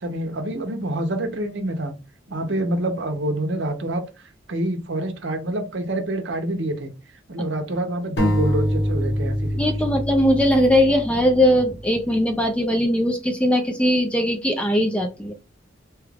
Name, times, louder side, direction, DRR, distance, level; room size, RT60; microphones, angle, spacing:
voice 1, 0.0-1.9 2.3-4.0 4.5-6.9 7.3-9.9, right 1 dB, 65° right, 0.7 m, -27 dB
sound 1, 8.2-11.8, equal, 60° left, 0.8 m, -25 dB
voice 2, 9.6-15.3, equal, 5° left, 0.4 m, -20 dB
2.9 x 2.3 x 3.3 m
head